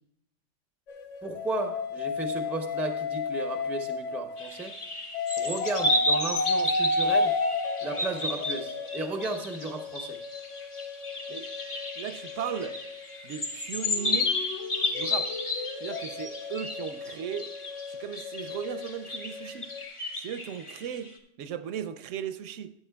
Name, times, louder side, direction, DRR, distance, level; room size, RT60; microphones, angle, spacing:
sound 1, 0.9-4.7 5.1-13.3 13.9-19.8, left 3 dB, 80° left, 1.2 m, -33 dB
voice 1, 1.2-4.8 5.4-7.4 7.8-10.2, right 2 dB, ahead, 0.4 m, -34 dB
sound 2, 4.4-21.1, left 2 dB, 30° left, 0.9 m, -33 dB
voice 2, 12.0-12.8 13.2-14.4 14.9-15.3 15.8-17.6 18.0-19.7 20.1-22.7, right 9 dB, 85° right, 0.9 m, -36 dB
13.5 x 8.7 x 2.3 m
omnidirectional pair, 1.2 m